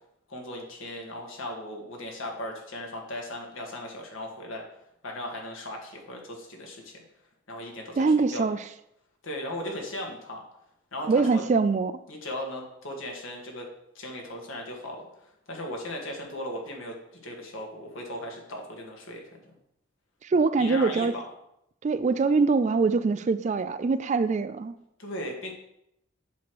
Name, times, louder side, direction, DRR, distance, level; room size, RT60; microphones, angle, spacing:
voice 1, 0.3-4.6 5.0-7.0 7.5-8.5 9.2-10.4 10.9-11.5 12.1-13.7 13.9-15.0 15.5-16.9 17.2-19.3 20.6-21.2 25.0-25.5, left 1 dB, 80° left, 1 dB, 1.7 m, -37 dB
voice 2, 8.0-8.6 11.1-12.0 20.2-21.1 21.8-24.8, right 4 dB, 35° right, 12 dB, 0.3 m, -23 dB
8.3 x 3.1 x 6.1 m, 0.79 s
head